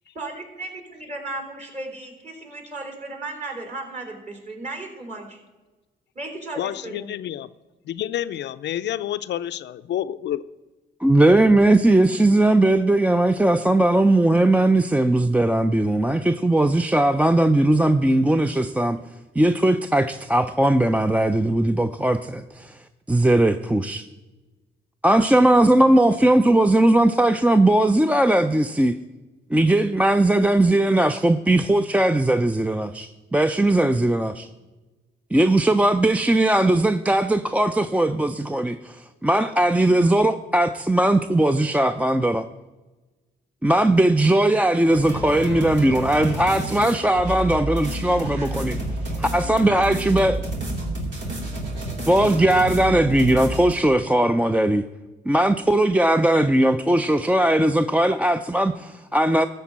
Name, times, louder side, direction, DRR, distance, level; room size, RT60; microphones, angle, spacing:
voice 1, 0.2-5.4 6.2-7.1, right 2 dB, 40° right, 3.6 m, -35 dB
voice 2, 6.6-7.5 7.9-10.4, left 11 dB, 70° left, 0.4 m, -29 dB
voice 3, 11.0-19.0 19.4-22.8 23.1-24.1 25.0-28.9 29.5-34.5 35.3-42.5 43.6-48.8 49.2-50.4 52.1-54.8 55.3-59.5, right 1 dB, 5° right, 0.4 m, -19 dB
sound 1, 44.9-53.7, right 1 dB, 75° right, 2.9 m, -30 dB
13.0 x 4.5 x 8.5 m
cardioid pair, 80°, 19 cm